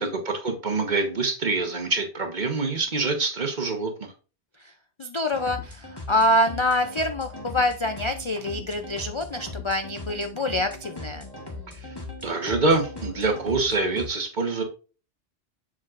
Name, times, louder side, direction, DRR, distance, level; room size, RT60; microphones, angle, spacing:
voice 1, 0.0-4.1 11.7-11.9 12.2-14.6, right 3 dB, 40° right, 4 dB, 1.2 m, -25 dB
voice 2, 5.0-11.3, left 1 dB, 50° left, 7 dB, 0.3 m, -26 dB
sound 1, 5.3-14.1, left 2 dB, 20° left, 1.4 m, -39 dB
7.4 x 7.3 x 2.5 m, 0.36 s
omnidirectional pair, 1.2 m